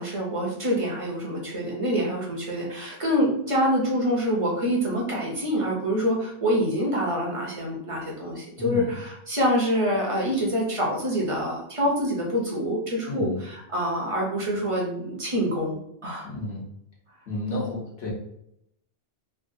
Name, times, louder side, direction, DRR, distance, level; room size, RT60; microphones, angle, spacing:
voice 1, 0.0-15.8 16.0-16.3, equal, 35° right, -2 dB, 0.6 m, -26 dB
voice 2, 8.6-9.0 13.1-13.4 16.2-16.7 17.3-18.1, left 3 dB, 70° left, -4 dB, 1.3 m, -31 dB
3.3 x 2.3 x 2.6 m, 0.77 s
omnidirectional pair, 1.2 m